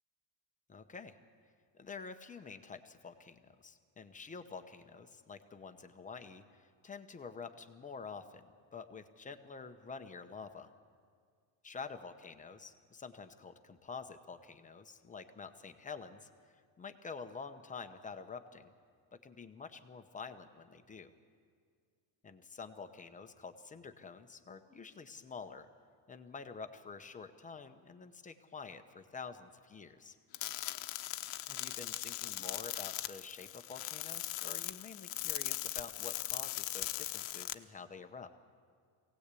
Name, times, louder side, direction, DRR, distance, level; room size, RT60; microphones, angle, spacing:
voice 1, 0.7-1.2 1.8-8.4 8.7-10.7 11.6-18.7 19.1-21.1 22.2-25.7 26.1-30.2 31.5-38.3, left 5 dB, 15° left, 8 dB, 0.9 m, -48 dB
sound 1, 30.3-37.5, left 17 dB, 85° left, 1.1 m, -39 dB
24.0 x 17.5 x 8.4 m, 2.1 s
cardioid pair, 155°, 46 cm